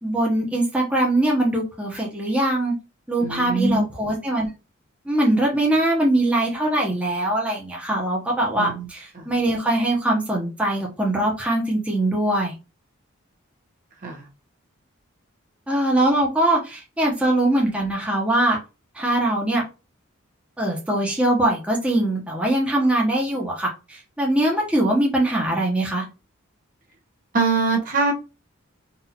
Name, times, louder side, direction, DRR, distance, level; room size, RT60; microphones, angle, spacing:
voice 1, 0.0-2.7 3.1-4.5 5.0-12.5 15.7-18.6 18.9-19.6 20.6-26.0, right 1 dB, 5° right, -2 dB, 0.8 m, -22 dB
voice 2, 3.2-3.8 8.6-8.8 14.0-14.2 27.3-28.1, right 3 dB, 40° right, 0 dB, 0.9 m, -22 dB
4.0 x 2.4 x 2.8 m, 0.29 s
head